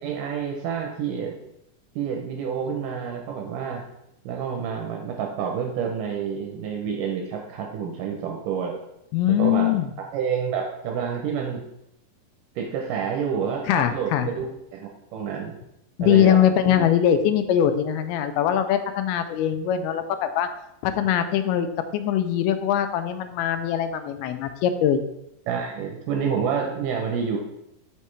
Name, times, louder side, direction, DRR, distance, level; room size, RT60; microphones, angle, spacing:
voice 1, 0.0-1.3 2.0-3.8 4.3-8.8 9.4-9.7 10.1-11.6 12.6-15.5 16.0-16.8 25.5-27.4, right 7 dB, 80° right, 1 dB, 2.0 m, -28 dB
voice 2, 9.1-9.9 13.7-14.3 16.0-20.5 20.8-21.7 21.9-25.0, left 10 dB, 90° left, 9 dB, 2.5 m, -22 dB
6.4 x 5.5 x 3.2 m, 0.84 s
omnidirectional pair, 4.4 m